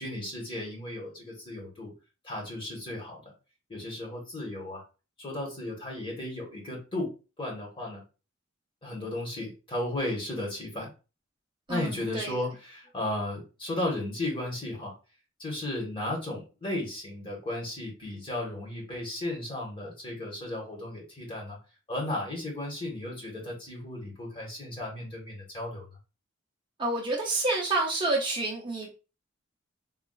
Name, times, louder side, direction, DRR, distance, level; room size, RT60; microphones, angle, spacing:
voice 1, 0.0-1.9 2.2-3.2 3.7-4.8 5.2-7.1 7.4-8.0 8.8-10.9 11.7-14.9 15.4-21.6 21.9-25.8, left 1 dB, 25° left, -2 dB, 1.1 m, -35 dB
voice 2, 11.7-12.5 26.8-29.0, right 2 dB, 25° right, -1 dB, 0.5 m, -29 dB
3.8 x 2.3 x 2.3 m, 0.32 s
head